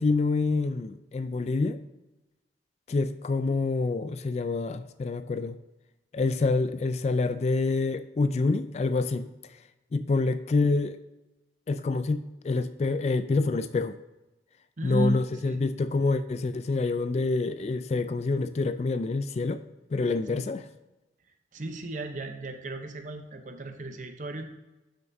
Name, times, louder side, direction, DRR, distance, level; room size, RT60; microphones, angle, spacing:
voice 1, 0.0-1.8 2.9-5.6 6.1-9.3 9.9-11.0 11.7-14.0 14.8-19.6 19.9-20.6, left 3 dB, 35° left, 11 dB, 0.3 m, -27 dB
voice 2, 14.8-15.6 20.3-20.5 21.5-24.4, right 2 dB, 45° right, 7 dB, 0.7 m, -34 dB
12.0 x 6.6 x 2.7 m, 1.0 s
head